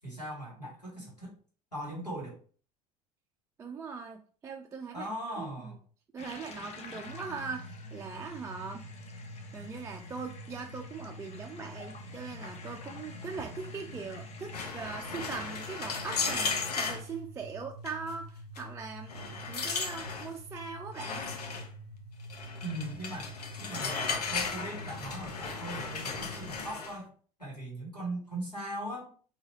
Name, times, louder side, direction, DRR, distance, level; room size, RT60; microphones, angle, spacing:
voice 1, 0.0-1.3 1.7-2.4 4.9-5.8 22.6-27.1 27.4-29.1, right 1 dB, 90° left, -5 dB, 1.7 m, -39 dB
voice 2, 3.6-5.5 6.1-8.8 9.5-19.2 19.5-21.3, right 5 dB, 15° right, 2 dB, 0.3 m, -41 dB
sound 1, 6.2-14.7, left 5 dB, 35° left, 0.7 m, -49 dB
sound 2, 7.0-26.6, right 1 dB, 50° left, 1.5 m, -47 dB
sound 3, 14.5-17.0 17.9-18.1 18.6-18.7 19.1-20.3 20.9-21.7 22.3-27.0, left 5 dB, 75° left, 0.6 m, -35 dB
3.9 x 2.8 x 2.8 m, 0.42 s
figure-of-eight pair, 70°, 20 cm